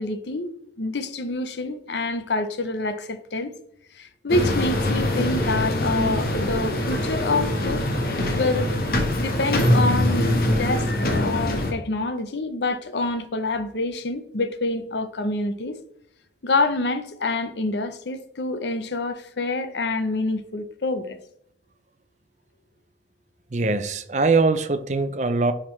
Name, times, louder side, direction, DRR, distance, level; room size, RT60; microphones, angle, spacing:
voice 1, 0.0-3.5 3.9-7.8 8.3-8.7 9.2-15.8 16.4-21.2, left 2 dB, 80° left, 0.7 m, -27 dB
sound 1, 4.3-11.7, left 1 dB, 55° left, 1.2 m, -23 dB
voice 2, 23.5-25.5, right 3 dB, 40° right, 0.5 m, -22 dB
10.5 x 3.7 x 3.2 m
head